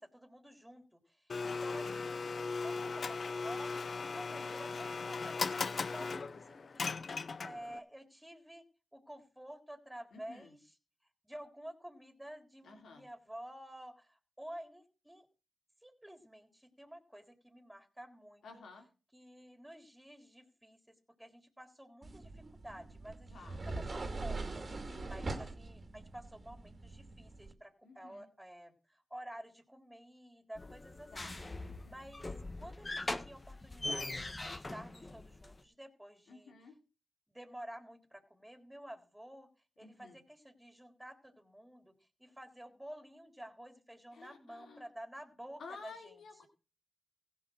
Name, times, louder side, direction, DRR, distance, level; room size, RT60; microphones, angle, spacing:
voice 1, 0.0-2.1 2.6-7.0 7.4-8.6 8.9-10.6 11.2-15.3 15.8-18.6 19.1-23.6 23.9-24.6 25.1-31.4 31.9-36.5 37.3-39.5 39.8-41.9 42.2-46.1, right 1 dB, 5° right, 6 dB, 3.8 m, -51 dB
Domestic sounds home sounds, 1.3-7.8, left 4 dB, 55° left, 0.8 m, -38 dB
voice 2, 4.1-4.5 10.1-10.5 12.6-13.1 18.4-18.9 23.3-23.6 24.7-25.3 27.8-28.3 31.1-32.1 36.3-36.8 39.8-40.2 44.1-44.9 45.6-46.5, left 4 dB, 75° left, 4 dB, 3.2 m, -53 dB
sound 1, 22.0-27.5, right 3 dB, 45° right, 2.4 m, -42 dB
sound 2, 30.5-35.6, left 2 dB, 30° left, 1.6 m, -42 dB
16.0 x 5.7 x 6.4 m, 0.34 s
supercardioid pair, 50°, 0 cm